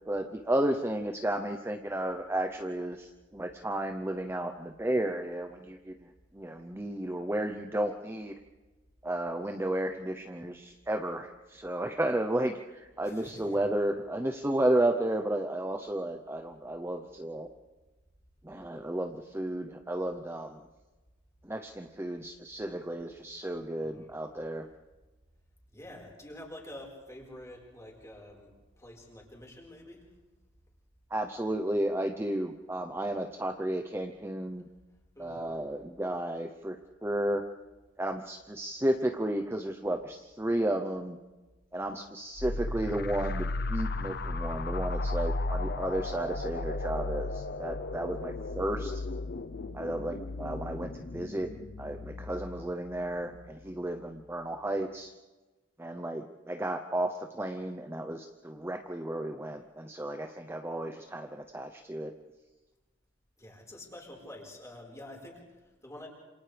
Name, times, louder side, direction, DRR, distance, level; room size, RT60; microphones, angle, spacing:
voice 1, 0.1-5.9 6.3-8.3 9.0-17.5 18.4-20.6 21.4-24.7 31.1-34.7 35.2-37.5 38.0-41.2 41.7-49.0 49.7-51.5 51.8-55.1 55.8-62.1, right 1 dB, 15° right, 5 dB, 0.8 m, -33 dB
voice 2, 13.0-13.7 23.8-24.4 25.7-30.1 35.1-35.7 63.4-66.1, left 1 dB, 15° left, -1 dB, 4.8 m, -48 dB
sound 1, 42.4-53.7, left 2 dB, 55° left, 0.8 m, -35 dB
28.0 x 27.0 x 3.4 m, 1.2 s
head